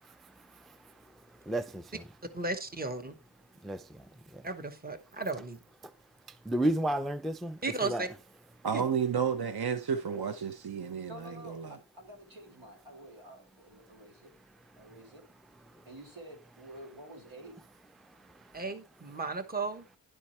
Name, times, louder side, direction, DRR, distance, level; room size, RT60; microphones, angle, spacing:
voice 1, 1.5-2.0 3.6-3.8 6.5-8.1, right 1 dB, ahead, 0.4 m, -31 dB
voice 2, 2.3-3.2 4.4-5.6 7.6-8.1 8.7-8.8 18.5-19.8, right 3 dB, 20° right, 1.0 m, -35 dB
voice 3, 8.6-11.8, right 7 dB, 55° right, 0.8 m, -32 dB
voice 4, 11.1-14.3 14.8-15.2 15.9-17.6, right 1 dB, 90° right, 2.8 m, -50 dB
11.0 x 4.5 x 4.2 m
wide cardioid pair, 75°, 47 cm